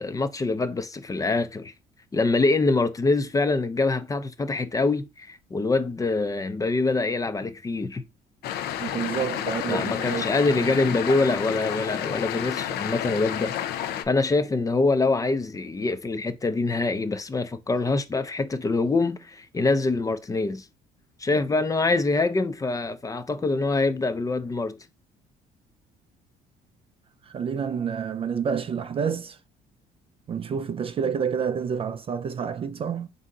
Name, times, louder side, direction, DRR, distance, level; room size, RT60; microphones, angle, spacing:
voice 1, 0.0-1.7 2.1-8.0 9.7-13.6 14.0-20.7 21.2-24.8, left 3 dB, 20° left, 0.5 m, -25 dB
sound 1, 8.4-14.1, left 10 dB, 75° left, 0.5 m, -30 dB
voice 2, 8.8-10.2 10.6-10.7 27.2-29.4 30.3-33.1, right 7 dB, 35° right, 0.4 m, -29 dB
4.3 x 2.7 x 3.7 m
cardioid pair, 110°, 17 cm